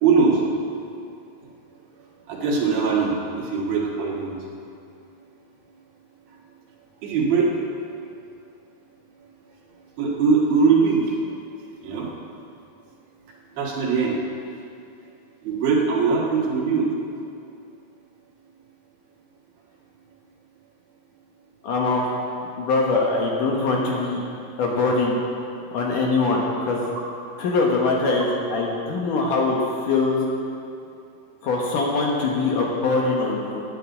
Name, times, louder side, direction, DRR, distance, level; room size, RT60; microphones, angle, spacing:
voice 1, 0.0-0.4 2.3-3.1 3.4-4.4 7.0-7.5 10.0-11.0 11.8-12.1 13.6-14.1 15.5-16.9, right 5 dB, 75° right, -3 dB, 3.6 m, -21 dB
voice 2, 21.6-22.2 22.6-24.2 24.6-25.2 25.7-26.9 27.4-29.6 29.8-30.2 31.4-33.6, left 3 dB, 65° left, -2 dB, 2.6 m, -22 dB
10.0 x 9.2 x 8.3 m, 2.5 s
omnidirectional pair, 4.3 m